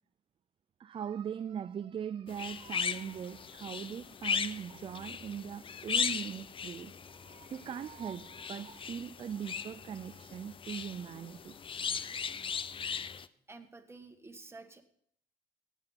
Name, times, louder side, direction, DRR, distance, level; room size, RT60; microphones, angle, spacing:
voice 1, 0.8-11.6, right 8 dB, 30° right, 0.4 m, -40 dB
sound 1, 2.3-13.3, left 6 dB, 30° left, 0.6 m, -38 dB
voice 2, 13.5-14.8, right 3 dB, 15° right, 1.5 m, -51 dB
17.0 x 7.2 x 5.8 m
cardioid pair, 110°, 17 cm